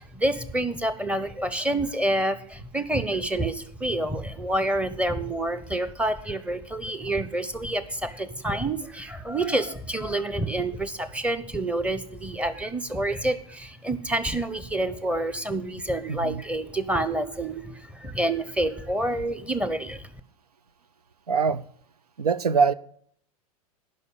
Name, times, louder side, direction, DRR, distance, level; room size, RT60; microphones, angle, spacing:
voice 1, 0.0-20.1, right 1 dB, 5° right, 13 dB, 1.0 m, -28 dB
voice 2, 16.1-16.4 21.3-21.6 22.2-22.7, right 5 dB, 90° right, 19 dB, 0.6 m, -23 dB
11.0 x 5.5 x 8.6 m, 0.63 s
hypercardioid pair, 100°, 19 cm